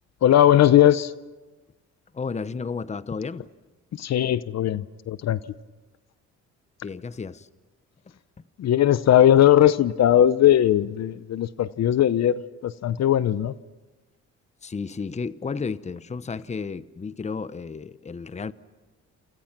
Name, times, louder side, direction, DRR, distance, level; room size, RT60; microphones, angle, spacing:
voice 1, 0.2-1.1 4.0-5.4 8.6-13.5, left 11 dB, 60° left, 0.8 m, -19 dB
voice 2, 2.1-3.5 6.8-7.5 14.6-18.5, left 5 dB, 25° left, 0.8 m, -32 dB
29.0 x 28.5 x 6.0 m
cardioid pair, 90°, 30 cm